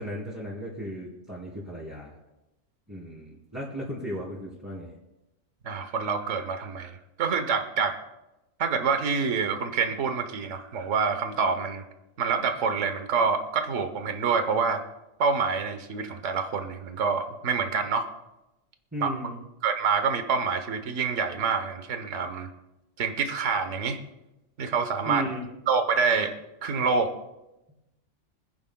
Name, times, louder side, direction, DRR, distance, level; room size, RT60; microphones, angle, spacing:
voice 1, 0.0-2.2 2.9-4.9 18.9-19.4 25.0-25.4, equal, 10° right, -8 dB, 3.0 m, -35 dB
voice 2, 5.6-8.0 8.6-11.8 12.2-14.8 15.2-18.1 19.0-19.1 19.6-22.5 23.0-24.0 24.6-25.2 25.7-26.3 26.6-27.1, right 5 dB, 70° right, 8 dB, 1.3 m, -26 dB
25.0 x 10.5 x 2.3 m, 0.94 s
omnidirectional pair, 1.3 m